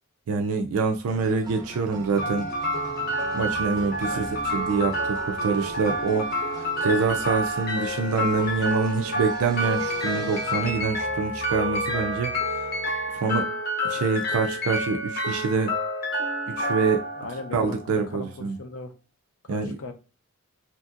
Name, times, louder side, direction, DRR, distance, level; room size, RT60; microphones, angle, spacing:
voice 1, 0.3-2.5 3.3-4.3 4.5-12.7 13.1-13.5 13.8-15.7 16.5-17.1 17.5-18.6 19.5-19.8, right 4 dB, 80° right, 0.4 m, -26 dB
sound 1, 1.1-13.4, right 1 dB, 15° right, 0.5 m, -42 dB
sound 2, 2.2-18.2, equal, 45° left, 0.7 m, -29 dB
voice 2, 4.0-4.4 17.2-18.9 19.4-19.9, left 3 dB, 80° left, 0.5 m, -38 dB
2.8 x 2.6 x 2.4 m
head